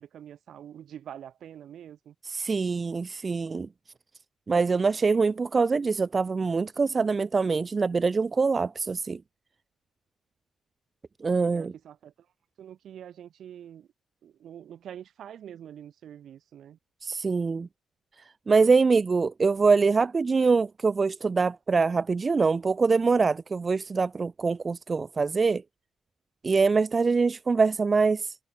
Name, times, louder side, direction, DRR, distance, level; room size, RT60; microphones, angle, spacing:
voice 1, 0.0-2.1 11.5-12.1 12.6-13.9 14.2-16.8, right 10 dB, 65° right, 1.4 m, -45 dB
voice 2, 2.2-3.7 4.5-9.2 11.2-11.7 17.0-17.7 18.5-25.6 26.4-28.4, right 4 dB, 30° right, 0.4 m, -24 dB
cardioid pair, 90°, 0 cm